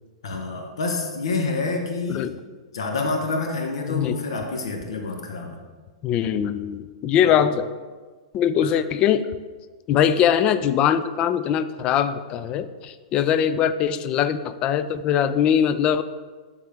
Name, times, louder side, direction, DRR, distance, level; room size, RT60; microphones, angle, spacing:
voice 1, 0.2-2.3 2.7-5.6 7.2-7.4 8.6-8.7, left 3 dB, 65° left, 3 dB, 0.8 m, -27 dB
voice 2, 3.9-4.2 6.0-7.7 8.3-9.3 9.9-16.0, left 9 dB, 30° left, 12 dB, 0.3 m, -21 dB
11.0 x 3.7 x 3.4 m, 1.4 s
figure-of-eight pair, 100°, 3 cm